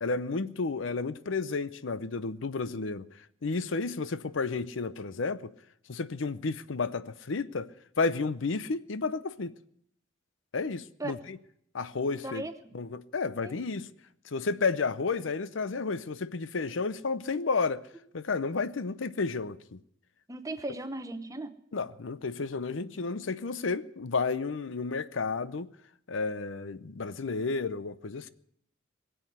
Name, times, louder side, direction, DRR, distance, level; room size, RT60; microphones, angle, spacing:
voice 1, 0.0-3.1 3.4-5.5 5.9-7.7 8.0-9.5 10.5-11.4 11.7-12.4 12.7-13.9 14.3-17.8 18.1-19.8 21.7-25.7 26.1-28.3, left 4 dB, 80° left, 0.7 m, -31 dB
voice 2, 20.3-21.5, right 2 dB, 15° right, 1.0 m, -37 dB
21.5 x 7.9 x 8.0 m
head